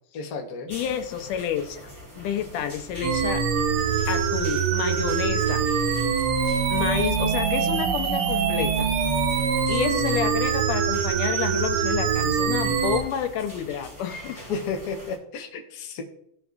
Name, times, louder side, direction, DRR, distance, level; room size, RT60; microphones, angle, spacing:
voice 1, 0.1-0.7 14.5-16.0, left 5 dB, 60° left, 2 dB, 1.1 m, -32 dB
voice 2, 0.7-1.8 2.2-3.4 4.1-5.6 6.7-8.9 9.7-14.4, left 9 dB, 85° left, 7 dB, 2.4 m, -29 dB
sound 1, 0.7-15.2, equal, 5° left, 2.4 m, -44 dB
sound 2, 3.0-13.0, right 6 dB, 85° right, 1.2 m, -24 dB
17.0 x 6.2 x 2.5 m, 0.72 s
omnidirectional pair, 3.6 m